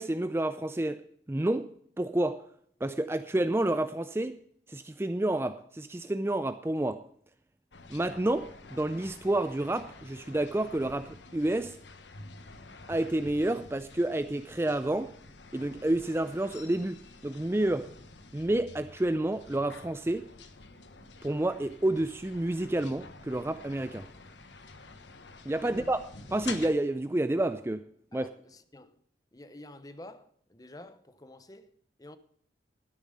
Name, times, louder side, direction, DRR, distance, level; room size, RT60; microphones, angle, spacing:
voice 1, 0.0-1.7 2.0-2.4 2.8-4.4 4.7-7.0 7.9-11.8 12.9-15.1 15.5-17.9 18.3-20.3 21.2-24.1 25.5-26.0 26.3-27.8 28.1-28.3, right 1 dB, 15° right, 0.4 m, -29 dB
sound 1, 7.7-26.7, left 3 dB, 90° left, 1.2 m, -49 dB
voice 2, 25.6-25.9 28.1-29.0 29.3-31.7 32.0-32.2, left 1 dB, 20° left, 0.8 m, -49 dB
12.0 x 9.9 x 5.4 m
head